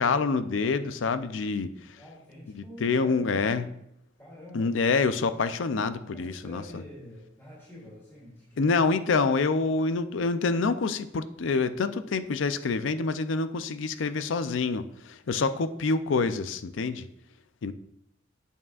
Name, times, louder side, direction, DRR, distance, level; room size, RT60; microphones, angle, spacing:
voice 1, 0.0-2.0 2.5-3.7 4.5-6.6 8.6-17.1 17.6-17.7, left 4 dB, 85° left, 12 dB, 0.5 m, -27 dB
voice 2, 1.8-3.7 4.2-4.7 6.1-8.7, left 1 dB, 15° left, -9 dB, 2.8 m, -47 dB
8.2 x 7.3 x 2.4 m, 0.77 s
head